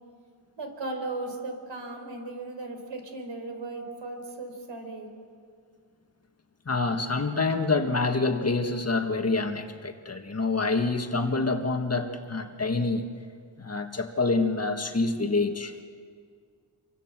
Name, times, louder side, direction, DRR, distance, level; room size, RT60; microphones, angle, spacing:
voice 1, 0.6-5.2, right 2 dB, 70° right, 5 dB, 4.6 m, -36 dB
voice 2, 6.7-13.1 13.6-15.8, left 3 dB, 35° left, 5 dB, 1.8 m, -27 dB
28.5 x 24.5 x 7.5 m, 2.2 s
wide cardioid pair, 120°, 45 cm